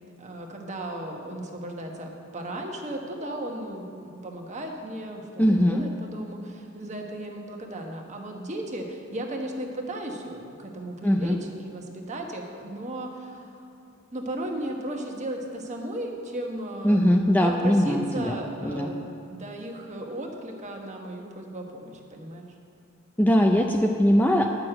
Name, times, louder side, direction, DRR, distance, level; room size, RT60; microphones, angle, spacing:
voice 1, 0.2-13.7 14.1-17.0 17.4-22.5, right 1 dB, 35° right, 2 dB, 1.2 m, -35 dB
voice 2, 5.4-5.8 11.0-11.3 16.8-18.4 18.6-18.9 23.2-24.5, equal, 10° left, 3 dB, 0.4 m, -21 dB
10.5 x 6.3 x 7.8 m, 2.6 s
head